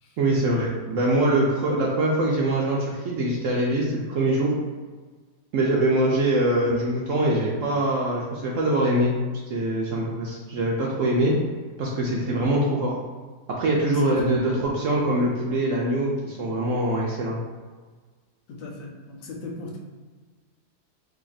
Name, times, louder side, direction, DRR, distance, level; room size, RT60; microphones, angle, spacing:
voice 1, 0.2-4.6 5.5-9.1 9.5-11.3 11.8-12.9 13.6-17.4, right 1 dB, 70° right, -3 dB, 0.8 m, -23 dB
voice 2, 13.8-14.4 18.5-19.8, left 2 dB, 65° left, 0 dB, 0.9 m, -38 dB
2.8 x 2.4 x 3.9 m, 1.4 s
omnidirectional pair, 1.8 m